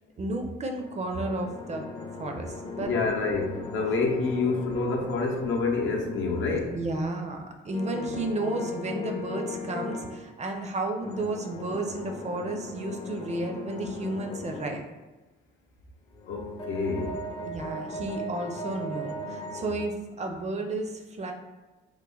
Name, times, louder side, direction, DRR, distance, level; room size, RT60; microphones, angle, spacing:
voice 1, 0.2-1.9 2.2-2.9 6.5-14.8 17.5-21.3, right 2 dB, 35° right, 4 dB, 0.5 m, -32 dB
sound 1, 0.7-6.9 7.7-10.2 11.0-14.8 16.1-19.8, left 2 dB, 25° left, 0.5 m, -38 dB
voice 2, 2.8-6.7 16.3-17.2, left 3 dB, 75° left, 1 dB, 0.6 m, -27 dB
3.0 x 2.1 x 3.7 m, 1.1 s
cardioid pair, 90°, 20 cm